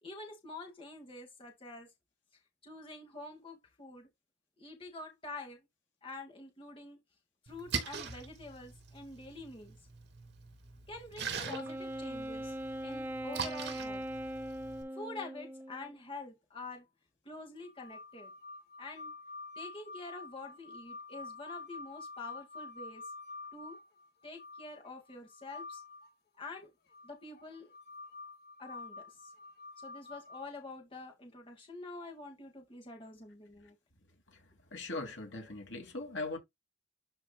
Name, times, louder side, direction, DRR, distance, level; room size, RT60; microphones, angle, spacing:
voice 1, 0.0-1.9 2.6-4.1 4.6-5.7 6.0-7.0 7.4-9.8 10.9-12.6 12.8-14.1 14.9-16.9 17.2-18.3 18.8-19.1 19.6-23.0 23.5-23.8 24.2-25.8 26.4-26.7 27.0-27.7 28.6-29.3 29.8-33.8, left 2 dB, 30° left, 2.3 m, -47 dB
Splash splatter, 7.5-14.8, right 5 dB, 60° right, 3.0 m, -42 dB
Wind instrument woodwind instrument, 11.4-16.0, right 1 dB, 10° right, 0.5 m, -40 dB
sound 1, 17.6-26.1 26.9-30.4, left 3 dB, 55° left, 1.1 m, -48 dB
voice 2, 34.7-36.4, left 2 dB, 80° left, 2.8 m, -39 dB
12.0 x 5.2 x 2.4 m
head